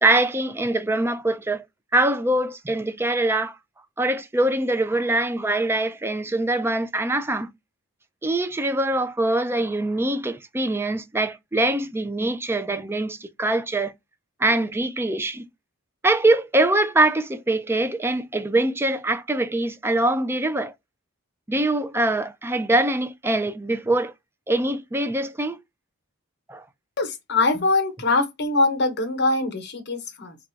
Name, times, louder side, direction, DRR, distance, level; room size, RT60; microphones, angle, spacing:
voice 1, 0.0-1.6 1.9-3.6 4.0-7.5 8.2-13.9 14.4-15.5 16.0-20.7 21.5-24.1 24.5-25.6 26.5-26.6, right 2 dB, 10° right, 0.3 m, -23 dB
voice 2, 27.0-30.4, left 2 dB, 50° left, 1.0 m, -23 dB
3.7 x 2.3 x 4.4 m
head